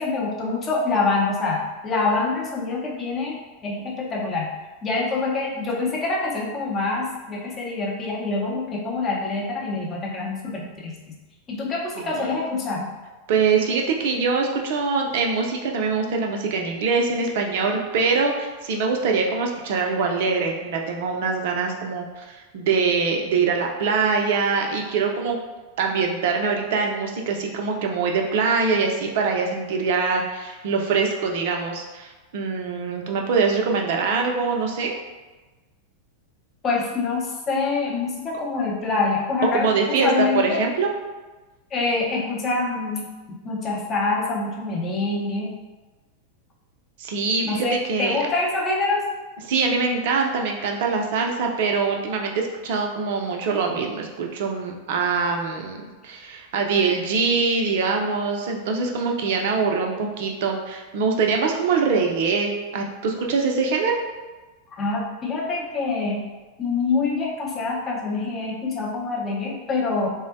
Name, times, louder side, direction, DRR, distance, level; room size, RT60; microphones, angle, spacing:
voice 1, 0.0-3.4 3.6-4.5 4.8-11.2 11.5-12.9 36.6-40.6 41.7-43.1 43.4-45.6 47.4-49.0 64.8-66.2 66.6-70.1, left 3 dB, 25° left, -3 dB, 0.7 m, -25 dB
voice 2, 12.0-12.4 13.3-25.4 25.8-35.0 39.5-40.9 47.0-48.2 49.4-64.0, right 4 dB, 50° right, 2 dB, 0.4 m, -23 dB
3.7 x 2.1 x 2.6 m, 1.2 s
figure-of-eight pair, 90°, 0 cm